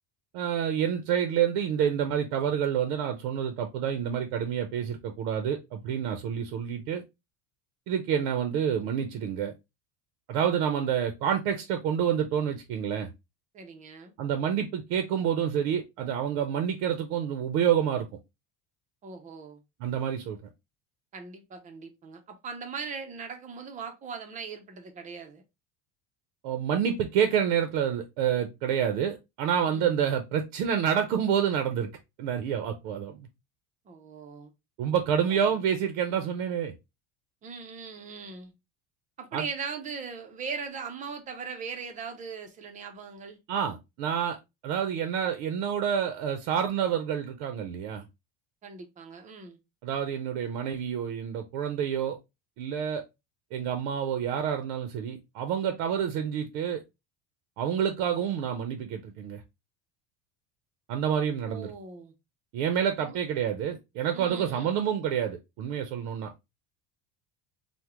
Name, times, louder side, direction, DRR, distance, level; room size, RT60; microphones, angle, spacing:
voice 1, 0.3-7.0 7.9-9.5 10.3-13.1 14.2-18.1 19.8-20.4 26.4-31.9 32.2-33.3 34.8-36.7 39.3-39.4 43.5-44.4 44.6-48.0 49.8-52.2 52.6-53.0 53.5-56.8 57.6-59.4 60.9-61.7 62.5-66.3, right 8 dB, 70° right, 0.6 m, -28 dB
voice 2, 13.5-14.1 19.0-19.6 21.1-25.4 29.7-29.9 33.9-34.5 35.2-35.6 37.4-38.5 39.2-43.4 48.6-49.6 61.4-62.1 63.0-63.2 64.1-64.8, right 5 dB, 20° right, 0.4 m, -40 dB
3.5 x 2.1 x 2.9 m
cardioid pair, 160°, 36 cm